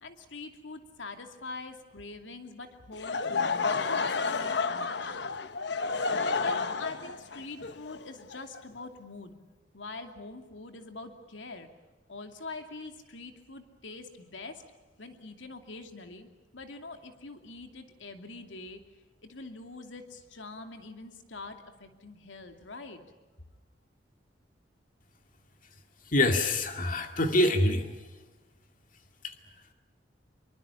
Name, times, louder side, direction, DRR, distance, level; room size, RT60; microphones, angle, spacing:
voice 1, 0.0-5.3 5.8-9.4 9.7-11.7 12.1-14.6 15.0-16.3 16.5-18.8 19.2-23.0, left 3 dB, 85° left, 6 dB, 2.6 m, -44 dB
Laughter / Crowd, 2.9-8.9, left 4 dB, 65° left, 1.1 m, -31 dB
voice 2, 26.1-27.9 29.2-29.3, left 1 dB, 45° left, 5 dB, 2.3 m, -25 dB
25.5 x 23.5 x 7.2 m, 1.2 s
head